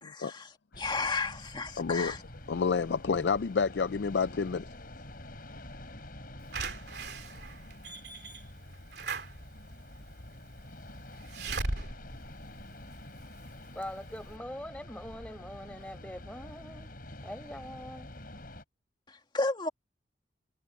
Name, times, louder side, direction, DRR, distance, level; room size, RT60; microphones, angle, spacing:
voice 1, 0.0-0.5 0.8-2.2 19.1-19.7, left 3 dB, 25° left, 2.2 m, -33 dB
sound 1, 0.7-18.6, left 1 dB, 55° left, 5.6 m, -48 dB
voice 2, 1.8-2.1 2.5-4.7, left 5 dB, 70° left, 0.4 m, -29 dB
Slam / Alarm, 6.5-13.3 13.8-13.9 14.2-14.3, right 3 dB, 65° right, 3.0 m, -39 dB
voice 3, 13.7-16.9 17.2-18.1, left 1 dB, 10° left, 5.7 m, -43 dB
head